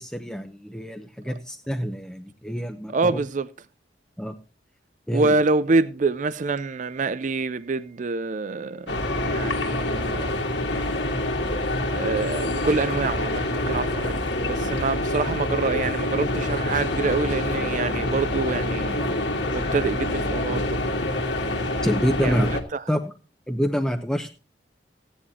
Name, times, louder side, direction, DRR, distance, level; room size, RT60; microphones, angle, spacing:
voice 1, 0.0-3.2 4.2-4.3 5.1-5.3 21.8-22.5 22.9-23.0 23.5-24.3, equal, 5° left, 0.7 m, -26 dB
voice 2, 2.9-3.5 5.1-10.4 11.9-19.1 19.5-20.8 22.2-22.4 22.7-22.8, right 3 dB, 45° right, 0.4 m, -26 dB
sound 1, 8.9-22.6, left 1 dB, 75° left, 2.0 m, -26 dB
15.5 x 10.0 x 2.8 m
head